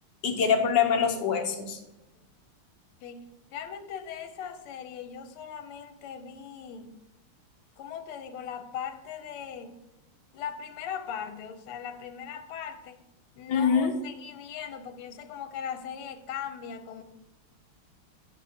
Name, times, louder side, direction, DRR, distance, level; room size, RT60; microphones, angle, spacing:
voice 1, 0.2-1.8 13.5-13.9, left 6 dB, 60° left, 5 dB, 1.3 m, -24 dB
voice 2, 3.0-7.0 7.8-9.8 10.3-13.0 13.4-17.0, left 8 dB, 80° left, 8 dB, 1.6 m, -39 dB
10.5 x 7.9 x 2.8 m, 0.95 s
omnidirectional pair, 2.4 m